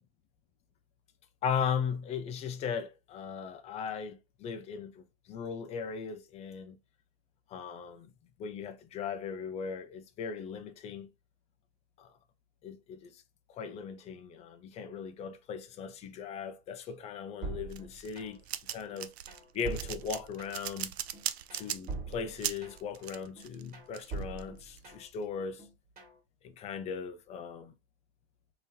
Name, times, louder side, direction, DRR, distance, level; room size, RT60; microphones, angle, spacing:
voice 1, 1.4-6.8 7.5-8.1 8.4-11.1 12.0-12.2 12.6-13.2 13.5-19.1 19.5-21.0 21.5-25.7 26.4-27.7, left 6 dB, 20° left, 0.5 m, -38 dB
sound 1, 17.4-18.5 18.9-20.8 21.1-23.0 23.4-25.2 25.6-26.2, right 4 dB, 30° right, 1.8 m, -43 dB
sound 2, 17.7-24.8, right 11 dB, 80° right, 0.5 m, -39 dB
3.3 x 2.9 x 2.7 m
hypercardioid pair, 115°, 31 cm